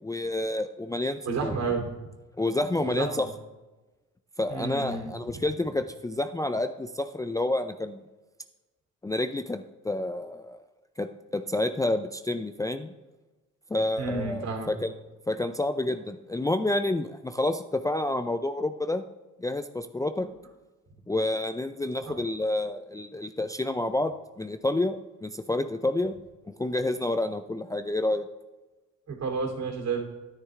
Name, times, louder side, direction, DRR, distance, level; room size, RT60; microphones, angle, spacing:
voice 1, 0.0-1.6 2.4-3.3 4.4-8.0 9.0-10.6 11.0-12.9 13.7-14.9 15.3-19.0 19.4-20.3 21.1-26.1 26.6-28.3, left 2 dB, 10° left, 8 dB, 0.4 m, -29 dB
voice 2, 1.2-1.9 2.7-3.2 4.5-5.4 14.0-14.7 20.2-20.3 22.0-22.2 29.1-30.0, right 4 dB, 60° right, 1 dB, 2.8 m, -31 dB
9.9 x 9.6 x 3.7 m, 1.1 s
cardioid pair, 90°, 30 cm